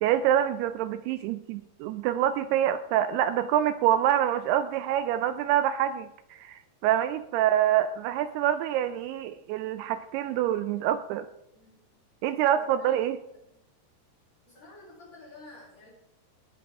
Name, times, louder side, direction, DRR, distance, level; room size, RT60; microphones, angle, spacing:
voice 1, 0.0-11.3 12.2-13.2, right 11 dB, 85° right, 11 dB, 2.3 m, -26 dB
voice 2, 12.5-13.0 13.4-13.6 14.5-15.9, left 2 dB, 45° left, -7 dB, 4.3 m, -51 dB
18.5 x 8.2 x 3.6 m, 0.83 s
omnidirectional pair, 4.9 m